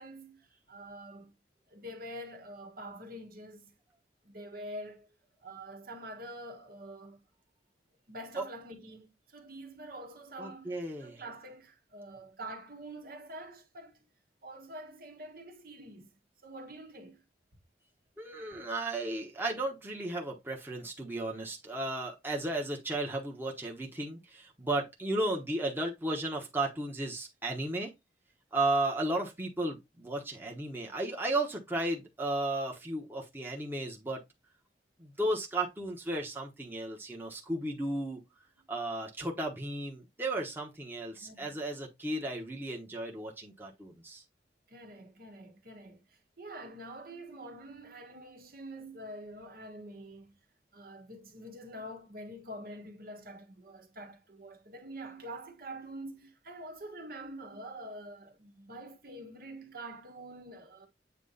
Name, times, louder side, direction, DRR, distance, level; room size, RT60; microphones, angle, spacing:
voice 1, 0.0-1.3 1.7-3.7 4.2-5.2 5.4-7.2 8.1-14.0 14.4-16.1 16.4-17.2 41.1-41.5 44.7-50.4 50.7-60.9, right 1 dB, 55° right, 1.4 m, -46 dB
voice 2, 10.4-11.2 18.2-27.9 28.5-34.2 35.0-38.2 38.7-44.2, right 2 dB, 10° right, 1.2 m, -34 dB
8.2 x 3.0 x 4.0 m
head